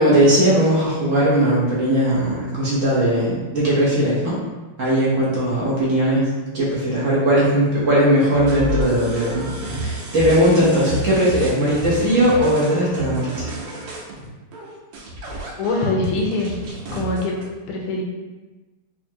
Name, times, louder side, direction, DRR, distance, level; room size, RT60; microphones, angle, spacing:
voice 1, 0.0-4.4 4.8-13.5, right 1 dB, 50° right, -8 dB, 1.0 m, -18 dB
sound 1, 8.3-17.4, equal, 85° right, 1.7 m, -31 dB
voice 2, 15.6-16.5 16.9-17.4 17.7-18.0, left 2 dB, 85° left, -1 dB, 1.6 m, -23 dB
4.5 x 2.5 x 2.8 m, 1.2 s
omnidirectional pair, 2.4 m